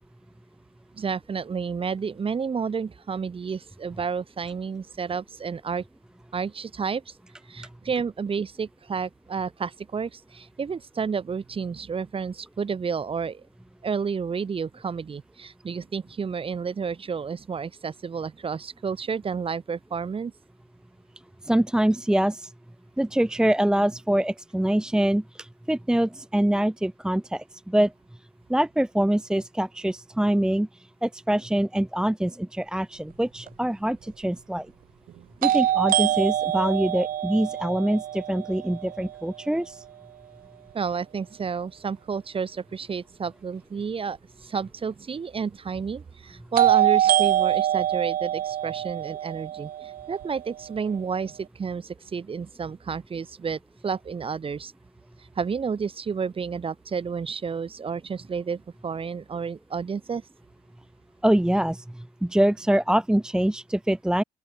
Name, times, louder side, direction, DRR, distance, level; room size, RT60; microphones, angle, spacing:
voice 1, 0.9-5.8 6.3-7.1 7.5-13.4 13.8-20.3 40.7-54.7 55.4-60.2, right 6 dB, 30° right, 4.2 m, -31 dB
voice 2, 21.5-22.5 23.0-27.9 28.5-30.7 31.0-34.7 35.4-39.8 61.2-64.2, right 1 dB, 5° right, 1.0 m, -24 dB
sound 1, 33.5-33.6 35.4-39.3 46.6-50.6, right 12 dB, 55° right, 0.9 m, -24 dB
open air
cardioid pair, 110°, 17 cm